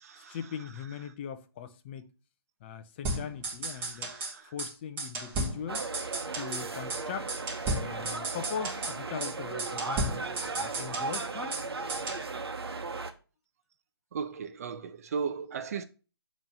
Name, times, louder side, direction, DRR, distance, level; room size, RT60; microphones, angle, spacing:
voice 1, 0.2-2.1 2.6-4.1 4.4-5.9 6.3-7.3 7.8-11.5, left 8 dB, 25° left, 0.6 m, -40 dB
sound 1, 3.0-4.3 4.6-4.7 5.0-6.6 6.9-7.0 7.3-8.9 9.2-9.3 9.6-11.6 11.9-12.2, right 2 dB, 15° right, 1.3 m, -34 dB
voice 2, 3.8-4.5 14.1-15.8, right 6 dB, 35° right, 0.5 m, -36 dB
sound 2, 5.7-13.1, right 4 dB, 70° right, 1.0 m, -36 dB
7.1 x 3.1 x 5.3 m
figure-of-eight pair, 145°, 14 cm